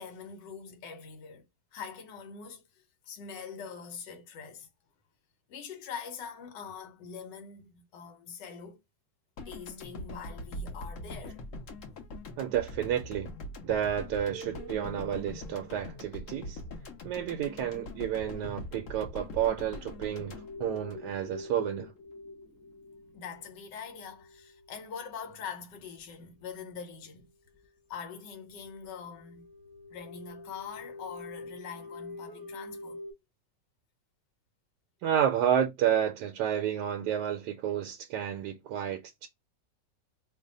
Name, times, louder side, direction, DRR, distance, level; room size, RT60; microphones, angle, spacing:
voice 1, 0.0-1.4 1.7-4.7 5.5-8.8 9.5-11.4 23.1-27.3 27.9-29.5 29.9-33.0, left 6 dB, 80° left, 1.4 m, -43 dB
sound 1, 9.4-21.6, left 1 dB, 55° left, 1.0 m, -43 dB
voice 2, 12.4-13.3 13.6-16.6 17.0-21.9 35.0-39.3, right 9 dB, 75° right, 1.1 m, -30 dB
sound 2, 14.3-16.7 19.5-25.1 26.0-26.1 26.4-26.6 27.2-27.3 27.5-27.7 27.9-33.1, left 1 dB, 10° right, 0.6 m, -46 dB
3.2 x 2.1 x 3.8 m
omnidirectional pair, 1.9 m